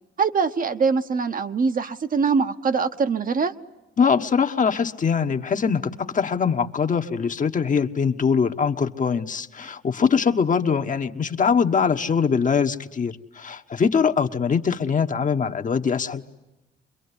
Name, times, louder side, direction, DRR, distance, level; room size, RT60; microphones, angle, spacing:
voice 1, 0.2-3.5, right 5 dB, 45° right, 8 dB, 1.1 m, -23 dB
voice 2, 4.0-16.2, left 6 dB, 40° left, 6 dB, 1.3 m, -22 dB
25.0 x 22.5 x 9.8 m, 1.0 s
cardioid pair, 90°, 20 cm